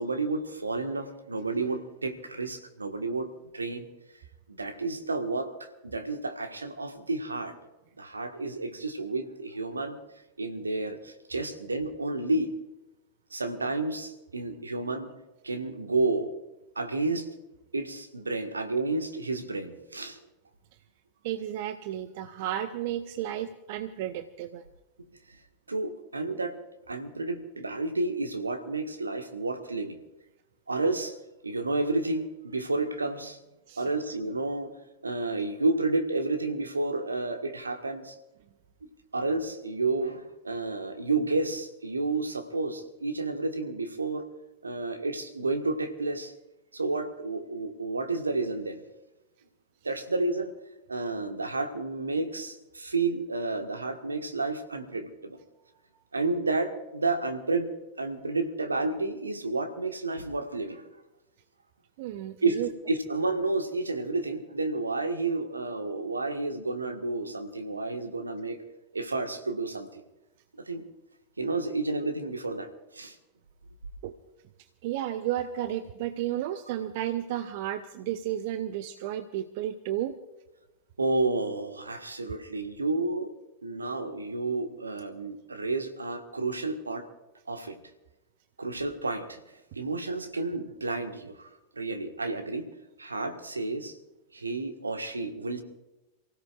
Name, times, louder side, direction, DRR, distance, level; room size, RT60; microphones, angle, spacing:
voice 1, 0.0-3.3 3.5-3.9 4.5-7.5 8.0-10.0 10.4-12.5 13.3-15.1 15.4-16.3 16.7-17.3 17.7-20.2 25.7-26.5 26.9-30.0 30.7-31.2 31.4-33.4 33.8-34.7 35.0-38.2 39.1-44.2 44.6-46.3 46.7-48.8 49.8-50.5 50.9-55.4 56.1-60.8 62.4-62.6 62.9-68.6 68.9-70.0 70.6-70.9 71.4-73.1 81.0-83.3 83.6-87.1 87.5-87.8 88.6-89.4 89.7-92.7 93.0-94.0 94.3-95.6, right 3 dB, 80° right, 7 dB, 1.5 m, -31 dB
voice 2, 21.2-24.7 33.7-33.9 62.0-62.7 74.0-74.2 74.8-80.2, right 12 dB, 50° right, 11 dB, 0.7 m, -33 dB
28.0 x 16.5 x 2.5 m, 1.0 s
figure-of-eight pair, 90°, 0 cm